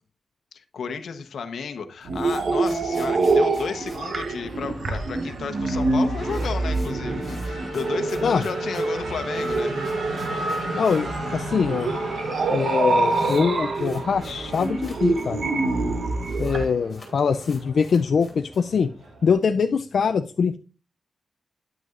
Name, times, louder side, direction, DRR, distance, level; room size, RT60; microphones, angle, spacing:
voice 1, 0.5-9.8, left 5 dB, 80° left, 8 dB, 0.9 m, -33 dB
sound 1, 1.7-5.0 5.2-5.3 5.6-5.7 6.0-11.2 11.5-11.6 12.3-12.4 12.6-15.3 15.5-15.6 15.8-16.6 16.9-18.8, left 2 dB, 25° left, 2.5 m, -49 dB
sound 2, 2.0-16.6, right 3 dB, 60° right, 1.0 m, -26 dB
Race car auto racing / Accelerating revving vroom, 2.4-19.3, right 2 dB, 75° right, 3.3 m, -34 dB
voice 2, 10.7-11.9 12.5-15.4 16.4-18.9 19.2-20.6, left 6 dB, 60° left, 8 dB, 0.4 m, -23 dB
9.3 x 9.1 x 2.5 m, 0.35 s
wide cardioid pair, 155°, 0 cm